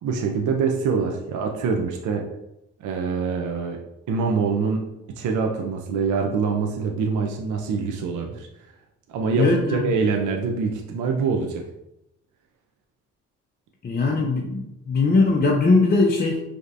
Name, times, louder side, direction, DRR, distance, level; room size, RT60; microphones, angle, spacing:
voice 1, 0.0-2.2 2.8-3.8 4.1-4.8 5.2-8.5 9.1-11.6, right 5 dB, 75° right, 2 dB, 0.6 m, -24 dB
voice 2, 9.4-9.9 13.8-16.4, left 3 dB, 30° left, -1 dB, 0.6 m, -20 dB
5.1 x 2.9 x 2.6 m, 0.86 s
cardioid pair, 90°, 30 cm